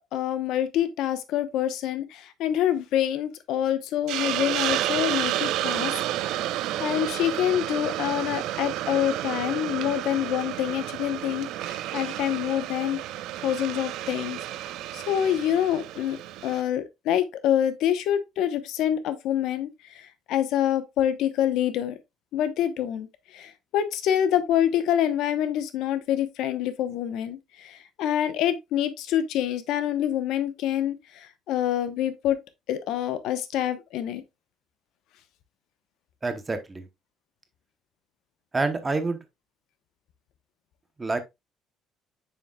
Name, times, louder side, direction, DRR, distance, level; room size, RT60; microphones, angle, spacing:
voice 1, 0.1-5.9 6.5-13.0 13.4-14.4 14.9-16.2 16.4-22.0 22.3-32.4 32.7-34.2, left 11 dB, 70° left, 0.9 m, -26 dB
Hiss, 4.1-16.6, right 13 dB, 70° right, 0.5 m, -31 dB
voice 2, 36.2-36.9 38.5-39.2 41.0-41.2, right 3 dB, 15° right, 0.8 m, -27 dB
7.3 x 6.3 x 2.3 m
cardioid pair, 160°, 0 cm